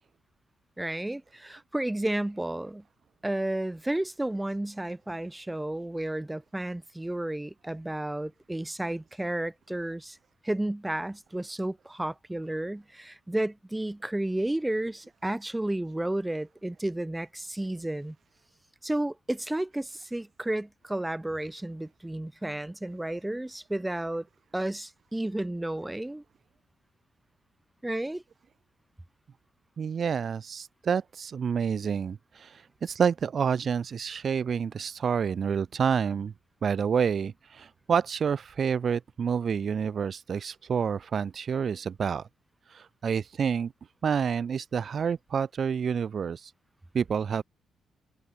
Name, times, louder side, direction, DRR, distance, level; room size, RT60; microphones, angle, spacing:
voice 1, 0.8-2.8 3.2-10.2 10.4-18.2 18.8-24.3 24.5-26.2 27.8-28.2, right 1 dB, 10° right, 6.2 m, -32 dB
voice 2, 29.8-36.3 36.6-42.3 42.7-43.7 44.0-46.5 46.9-47.4, right 7 dB, 50° right, 1.2 m, -28 dB
cardioid pair, 105°, 0 cm